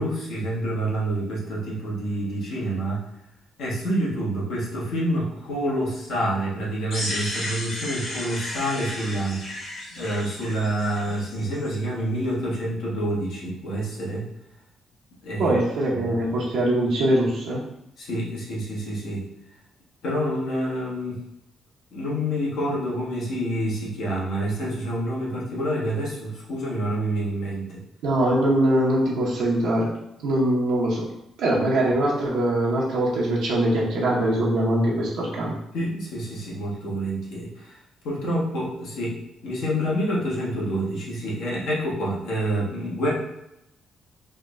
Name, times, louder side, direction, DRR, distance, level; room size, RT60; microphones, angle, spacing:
voice 1, 0.0-3.0 3.6-9.5 9.9-14.2 15.2-15.5 15.9-16.1 18.0-19.2 20.0-21.2 21.9-27.8 35.7-37.8 38.0-43.1, right 1 dB, 80° left, -4 dB, 1.2 m, -27 dB
sound 1, 6.9-11.8, left 1 dB, 65° left, 1.3 m, -34 dB
voice 2, 15.4-17.6 28.0-29.9 30.2-31.1 31.4-35.5, right 1 dB, 80° right, -5 dB, 0.8 m, -22 dB
3.6 x 2.1 x 3.4 m, 0.84 s
cardioid pair, 90°, 0 cm